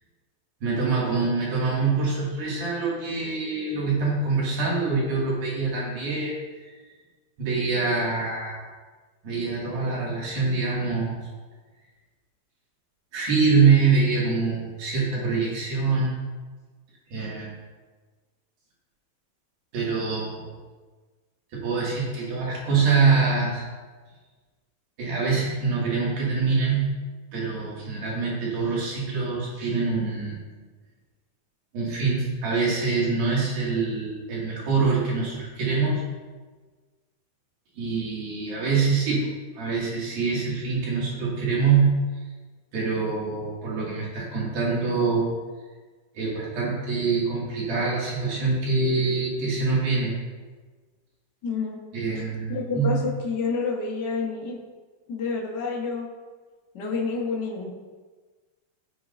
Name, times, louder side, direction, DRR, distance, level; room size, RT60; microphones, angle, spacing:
voice 1, 0.6-6.7 7.4-8.7 9.2-11.2 13.1-16.2 17.1-17.5 19.7-20.5 21.6-23.6 25.0-27.0 27.3-30.4 31.7-36.0 37.8-39.3 39.6-42.0 42.7-45.3 46.2-50.1 51.9-53.0, right 4 dB, 70° right, -6 dB, 4.2 m, -24 dB
voice 2, 51.4-51.8 52.1-52.2 52.5-54.6 55.1-56.0 56.7-57.7, left 4 dB, 75° left, -1 dB, 0.9 m, -29 dB
17.0 x 7.6 x 2.7 m, 1.4 s
omnidirectional pair, 4.4 m